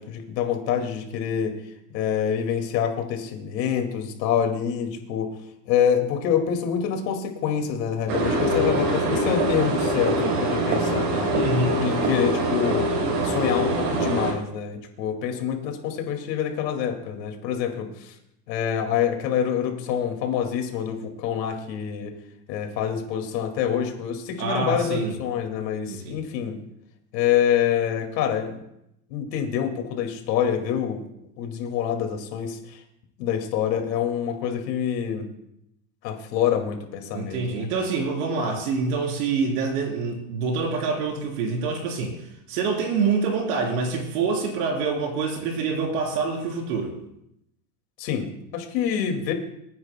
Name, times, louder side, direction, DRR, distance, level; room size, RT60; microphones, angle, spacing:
voice 1, 0.0-1.6 1.9-5.3 5.7-11.3 11.8-12.9 13.2-18.1 18.5-22.1 22.5-26.6 27.1-28.6 29.1-31.1 31.4-32.8 33.2-35.3 36.0-37.9 48.0-49.3, left 8 dB, 90° left, 4 dB, 2.4 m, -26 dB
sound 1, 8.1-14.3, right 1 dB, 85° right, 4.1 m, -24 dB
voice 2, 11.3-11.8 24.4-25.1 25.8-26.2 37.1-42.1 42.5-46.9, right 4 dB, 65° right, 0 dB, 3.9 m, -26 dB
25.5 x 9.6 x 2.2 m, 0.79 s
supercardioid pair, 160°, 49 cm